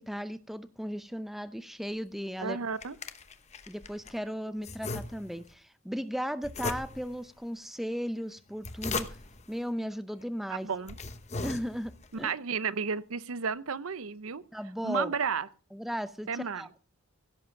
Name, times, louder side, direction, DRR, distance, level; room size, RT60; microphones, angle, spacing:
voice 1, 0.0-2.6 3.7-9.2 9.5-10.7 11.4-12.3 14.5-15.2 15.7-16.9, equal, ahead, 12 dB, 0.6 m, -36 dB
sound 1, 2.4-4.2 4.6-5.5 6.4-7.2 8.4-9.5 10.2-10.3 10.7-12.1, left 3 dB, 30° left, 0.9 m, -38 dB
voice 2, 2.4-3.0 10.5-11.0 12.2-14.4 14.8-15.5 16.3-16.7, right 5 dB, 80° right, 17 dB, 0.7 m, -32 dB
16.5 x 7.7 x 5.8 m, 0.37 s
head